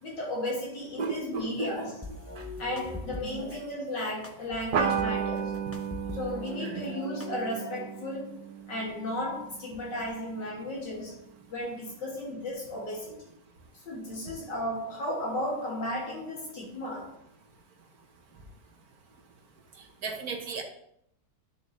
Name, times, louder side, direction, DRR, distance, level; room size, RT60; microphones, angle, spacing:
voice 1, 0.0-1.9 2.2-5.5 6.1-8.3 8.7-11.1 11.5-13.3 13.9-17.1, left 1 dB, 85° left, -5 dB, 3.0 m, -34 dB
voice 2, 1.0-1.9 2.4-2.5 3.2-3.6 6.6-6.9 20.0-20.6, right 4 dB, 60° right, 3 dB, 1.6 m, -35 dB
sound 1, 2.0-3.6 4.2-6.5 6.8-7.8, left 2 dB, 20° left, 0.3 m, -43 dB
sound 2, 4.7-9.6, right 7 dB, 85° right, 1.7 m, -33 dB
12.0 x 6.5 x 3.2 m, 0.75 s
omnidirectional pair, 1.9 m